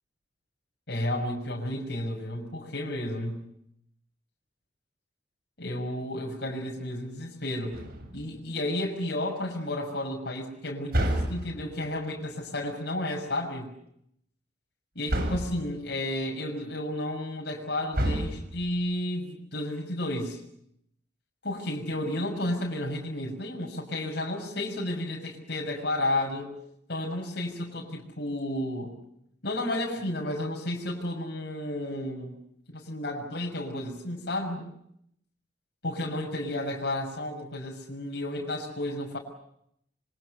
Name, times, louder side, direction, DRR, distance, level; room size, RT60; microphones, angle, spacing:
voice 1, 0.9-3.5 5.6-7.8 8.1-13.7 14.9-20.4 21.4-26.5 26.9-28.9 29.4-32.4 32.7-34.7 35.8-39.2, left 1 dB, 65° left, 0 dB, 6.5 m, -32 dB
sound 1, 7.7-8.4 10.9-11.8 15.1-15.7 17.9-18.8, equal, 60° right, 7.8 m, -29 dB
28.0 x 25.5 x 6.6 m, 0.73 s
head